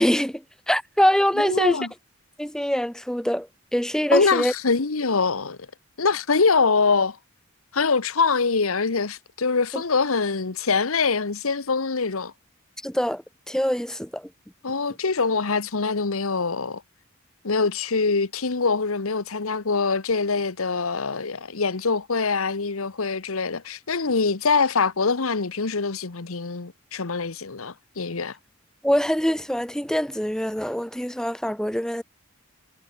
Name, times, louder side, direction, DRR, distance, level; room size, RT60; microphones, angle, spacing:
voice 1, 0.0-1.8 2.4-4.5 12.8-13.2 13.5-14.3 28.8-32.0, equal, 5° left, 0.9 m, -24 dB
voice 2, 1.4-1.9 4.1-5.6 6.0-7.2 7.7-12.3 14.6-16.8 17.4-28.3, left 4 dB, 90° left, 1.1 m, -24 dB
head